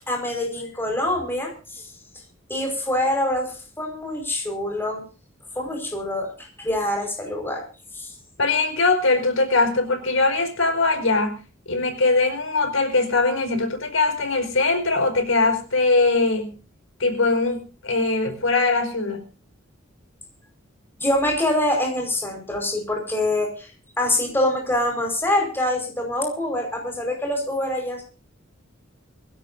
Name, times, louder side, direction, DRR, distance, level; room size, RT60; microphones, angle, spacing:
voice 1, 0.1-1.8 2.5-5.0 5.5-6.3 6.6-7.6 7.9-8.1 21.0-23.7 24.0-28.0, left 1 dB, 10° left, 1 dB, 5.0 m, -25 dB
voice 2, 8.4-16.6 17.0-19.3, left 3 dB, 85° left, 6 dB, 5.0 m, -21 dB
23.5 x 16.5 x 2.7 m, 0.34 s
head